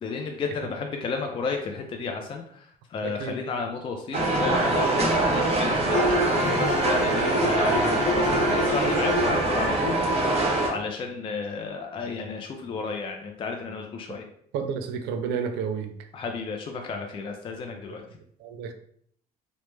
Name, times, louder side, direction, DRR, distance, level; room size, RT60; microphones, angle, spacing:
voice 1, 0.0-14.3 16.1-18.0, left 4 dB, 30° left, 3 dB, 0.3 m, -33 dB
sound 1, 4.1-10.7, right 2 dB, 35° right, 0.8 m, -24 dB
Bowed string instrument, 5.9-9.5, left 2 dB, 50° left, 0.8 m, -28 dB
voice 2, 14.5-15.9 18.4-18.7, right 6 dB, 80° right, 7 dB, 0.4 m, -30 dB
3.1 x 2.0 x 3.1 m, 0.65 s
cardioid pair, 110°, 17 cm